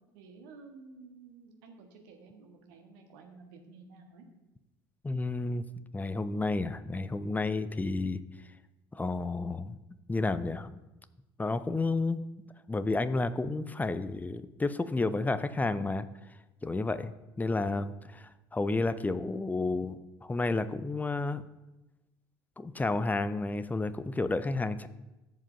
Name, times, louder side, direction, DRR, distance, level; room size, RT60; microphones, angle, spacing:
voice 1, 0.1-4.2, right 4 dB, 65° right, 3 dB, 1.4 m, -52 dB
voice 2, 5.0-5.6 5.9-8.2 8.9-9.8 10.1-10.8 11.4-12.2 12.7-16.1 16.6-17.1 17.4-21.4 22.6-24.9, left 3 dB, 15° left, 13 dB, 0.5 m, -31 dB
14.0 x 7.3 x 2.6 m, 1.0 s
figure-of-eight pair, 55°, 13 cm